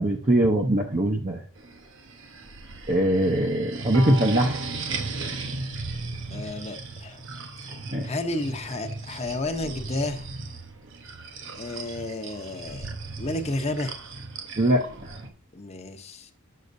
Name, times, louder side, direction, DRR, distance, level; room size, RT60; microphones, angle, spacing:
voice 1, 0.0-1.4 2.9-4.6 7.9-8.1 14.6-15.1, right 1 dB, 35° right, 0.6 m, -22 dB
sound 1, 1.6-15.3, right 3 dB, 60° right, 1.0 m, -36 dB
Bowed string instrument, 3.9-7.3, right 2 dB, 85° right, 1.3 m, -41 dB
voice 2, 6.3-7.2 8.0-10.3 11.5-14.0 15.5-16.3, left 2 dB, 30° left, 0.7 m, -32 dB
7.6 x 6.5 x 2.6 m
head